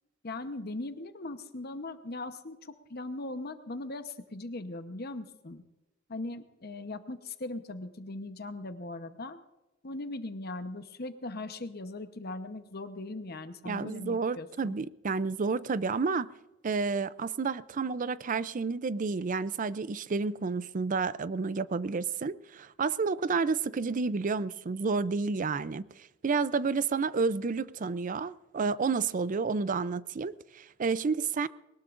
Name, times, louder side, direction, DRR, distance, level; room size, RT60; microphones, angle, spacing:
voice 1, 0.2-5.6 6.1-9.4 9.8-14.8, left 2 dB, 55° left, 1.0 m, -39 dB
voice 2, 13.7-16.3 16.6-25.9 26.2-31.5, right 4 dB, 45° right, 0.5 m, -30 dB
21.5 x 19.5 x 2.5 m
head